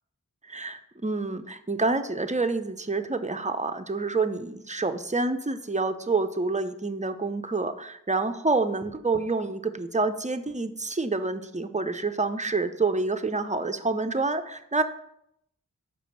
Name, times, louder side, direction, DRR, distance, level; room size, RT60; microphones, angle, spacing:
voice 1, 0.4-14.8, right 3 dB, 20° right, 8 dB, 0.7 m, -28 dB
6.0 x 5.0 x 6.4 m, 0.75 s
wide cardioid pair, 40°, 33 cm